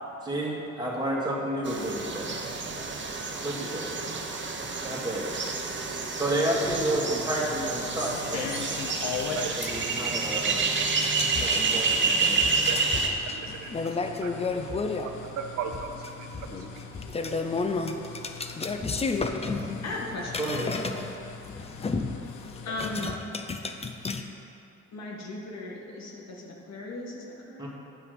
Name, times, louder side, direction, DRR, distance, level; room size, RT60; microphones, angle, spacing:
voice 1, 0.2-2.3 3.4-3.9 4.8-5.3 6.2-8.5 9.6-10.6 11.4-12.4 20.4-21.0 27.6-27.7, right 1 dB, 15° right, -4 dB, 2.0 m, -30 dB
sound 1, 1.6-13.1, right 4 dB, 40° right, 1.0 m, -29 dB
voice 2, 2.2-3.5 4.0-4.9 5.6-6.2 8.6-17.7, right 6 dB, 65° right, 3 dB, 0.6 m, -43 dB
sound 2, 6.6-23.1, left 6 dB, 85° left, 0.7 m, -42 dB
sound 3, 7.7-8.2 9.1-9.2 9.6-10.0 10.8-15.1 15.7-16.1 16.3-21.1 21.4-24.2, left 4 dB, 20° left, 0.5 m, -32 dB
voice 3, 19.8-20.8 22.6-23.2 24.9-27.7, left 2 dB, 60° left, -1 dB, 1.7 m, -37 dB
9.4 x 5.8 x 5.2 m, 2.9 s
cardioid pair, 90°, 30 cm